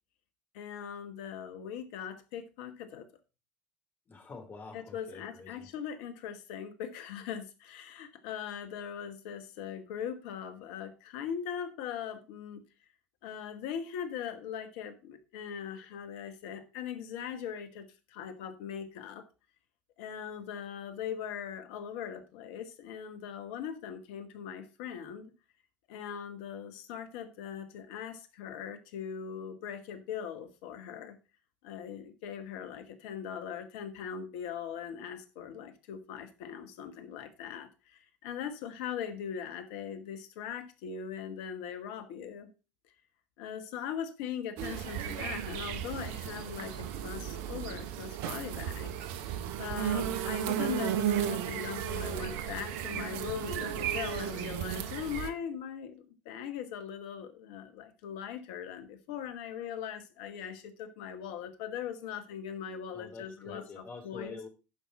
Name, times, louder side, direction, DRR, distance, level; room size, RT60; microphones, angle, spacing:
voice 1, 0.5-3.1 4.7-12.6 13.2-19.3 20.0-25.3 25.9-31.2 31.6-42.5 43.4-48.9 49.2-64.4, left 8 dB, 70° left, 9 dB, 1.3 m, -40 dB
voice 2, 4.1-5.7 62.9-64.5, left 4 dB, 35° left, 4 dB, 3.1 m, -46 dB
sound 1, 44.6-55.3, right 10 dB, 65° right, 0.9 m, -34 dB
11.0 x 5.5 x 4.2 m, 0.31 s
hypercardioid pair, 65°, 6 cm